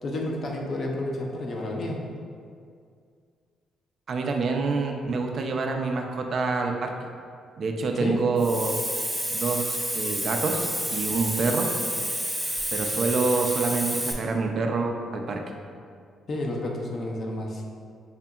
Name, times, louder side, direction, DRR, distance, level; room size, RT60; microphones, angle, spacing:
voice 1, 0.0-2.0 8.0-8.2 16.3-17.6, left 1 dB, 50° left, 0 dB, 0.6 m, -30 dB
voice 2, 4.1-6.9 7.6-8.8 9.3-11.7 12.7-15.4, right 4 dB, 55° right, 3 dB, 0.4 m, -27 dB
Hiss, 8.4-14.1, equal, ahead, 0.5 m, -29 dB
4.9 x 2.7 x 2.3 m, 2.2 s
cardioid pair, 90°, 0 cm